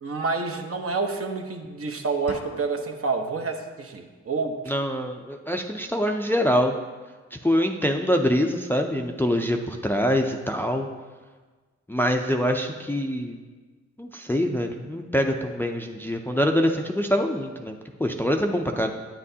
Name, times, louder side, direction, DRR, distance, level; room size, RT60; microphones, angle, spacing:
voice 1, 0.0-4.6, right 4 dB, 50° right, 4 dB, 0.9 m, -28 dB
sound 1, 2.3-3.3, left 5 dB, 55° left, 0.6 m, -42 dB
voice 2, 4.7-6.8 7.4-10.9 11.9-13.4 14.0-18.9, equal, 5° left, 3 dB, 0.5 m, -24 dB
9.8 x 8.9 x 2.8 m, 1.4 s
cardioid pair, 80°, 29 cm